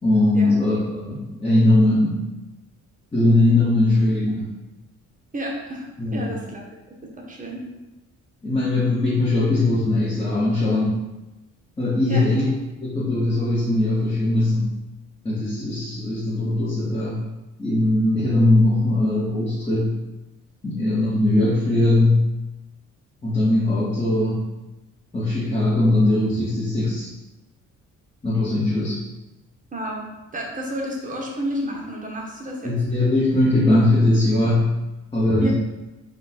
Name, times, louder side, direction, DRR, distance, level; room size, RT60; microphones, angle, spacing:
voice 1, 0.0-2.3 3.1-4.5 6.0-6.4 8.4-11.0 11.8-12.5 12.8-14.7 15.2-17.2 17.6-20.0 20.6-22.2 23.2-24.5 25.1-27.1 28.2-29.0 32.6-34.7 35.1-35.5, left 2 dB, 15° left, -8 dB, 1.0 m, -20 dB
voice 2, 5.3-6.7 7.2-7.6 12.1-12.3 29.7-30.1 30.3-32.7 35.4-35.5, equal, 25° right, -1 dB, 1.0 m, -30 dB
4.2 x 2.3 x 4.0 m, 1.0 s
cardioid pair, 105°, 31 cm